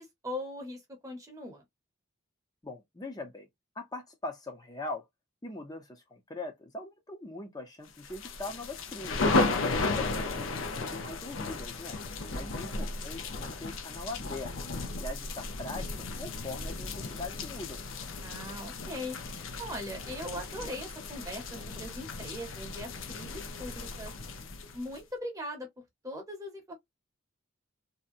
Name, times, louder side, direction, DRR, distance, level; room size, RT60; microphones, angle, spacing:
voice 1, 0.0-1.6 12.2-12.6 18.2-19.2 19.6-24.1 24.7-25.7 26.0-26.7, left 1 dB, 15° right, 0.9 m, -40 dB
voice 2, 2.6-3.5 3.8-5.1 5.4-9.2 9.8-12.0 12.3-14.5 15.0-17.8, left 2 dB, 20° left, 0.6 m, -41 dB
sound 1, 8.0-25.0, left 3 dB, 80° left, 0.6 m, -34 dB
2.7 x 2.2 x 2.5 m
head